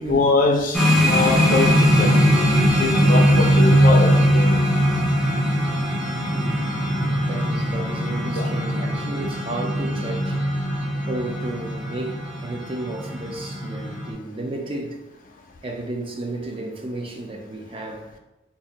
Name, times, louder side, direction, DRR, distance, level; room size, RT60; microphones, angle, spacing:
voice 1, 0.1-2.1 2.8-4.6 8.3-8.5, left 3 dB, 45° left, 0.4 m, -23 dB
sound 1, 0.7-14.1, equal, ahead, 0.7 m, -20 dB
voice 2, 6.3-6.7 7.3-15.0 15.6-18.1, right 2 dB, 30° right, 0.4 m, -33 dB
2.6 x 2.4 x 4.0 m
head